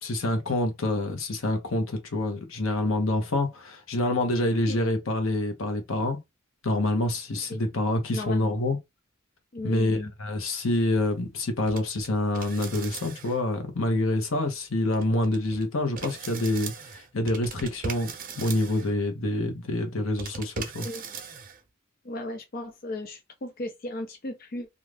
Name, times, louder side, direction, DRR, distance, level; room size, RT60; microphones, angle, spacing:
voice 1, 0.0-6.2 6.6-8.8 9.6-20.9, left 1 dB, 80° left, 0.9 m, -27 dB
voice 2, 8.1-8.6 9.5-10.1 20.8-21.0 22.0-24.7, left 2 dB, 45° left, 0.5 m, -35 dB
sound 1, 11.7-12.1 12.3-13.4 14.9-15.6 16.0-18.9 20.2-21.6, right 5 dB, 45° right, 0.6 m, -39 dB
2.5 x 2.3 x 3.2 m
head